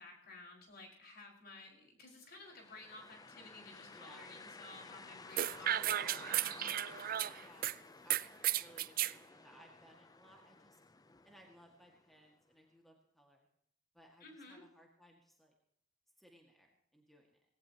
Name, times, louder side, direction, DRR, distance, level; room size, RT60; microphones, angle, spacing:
voice 1, 0.0-6.8 14.2-14.6, left 2 dB, 50° left, 0 dB, 5.0 m, -55 dB
sound 1, 2.4-12.2, left 3 dB, 20° left, 0.5 m, -54 dB
voice 2, 3.9-4.3 7.4-7.7 8.0-10.8 11.2-13.5 13.9-15.5 16.2-17.4, equal, ahead, 0 dB, 1.9 m, -62 dB
sound 2, 5.4-7.7 8.1-9.1, right 12 dB, 45° right, 0.4 m, -34 dB
19.0 x 17.5 x 2.9 m, 0.73 s
head